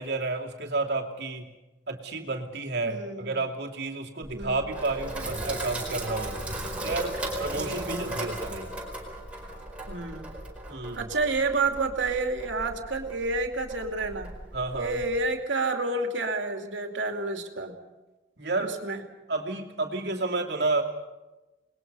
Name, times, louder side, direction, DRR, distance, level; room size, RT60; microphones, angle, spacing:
voice 1, 0.0-1.5 1.9-6.3 6.8-8.7 10.7-11.1 14.5-15.0 18.4-18.8 19.3-20.8, right 3 dB, 55° right, 1 dB, 2.7 m, -31 dB
voice 2, 2.8-3.4 4.3-4.8 7.5-8.1 9.9-10.3 10.9-14.3 14.7-17.7 18.6-19.0, right 3 dB, 75° right, 4 dB, 2.6 m, -30 dB
Sink (filling or washing), 4.2-15.2, right 1 dB, 5° right, 4.7 m, -37 dB
29.0 x 20.5 x 5.5 m, 1.1 s
head